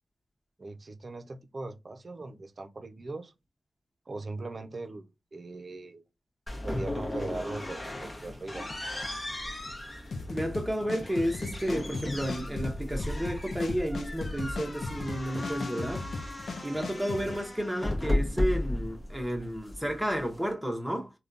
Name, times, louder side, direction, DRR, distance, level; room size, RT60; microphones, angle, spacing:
voice 1, 0.6-3.3 4.1-6.0 6.6-8.7, right 2 dB, 45° right, 0.6 m, -40 dB
sound 1, 6.5-20.5, left 1 dB, 35° left, 0.9 m, -35 dB
sound 2, 10.1-17.4, left 3 dB, 75° left, 0.5 m, -37 dB
voice 2, 10.3-16.1 16.6-21.1, equal, ahead, 0.8 m, -32 dB
3.4 x 2.2 x 2.6 m
cardioid pair, 50°, 0 cm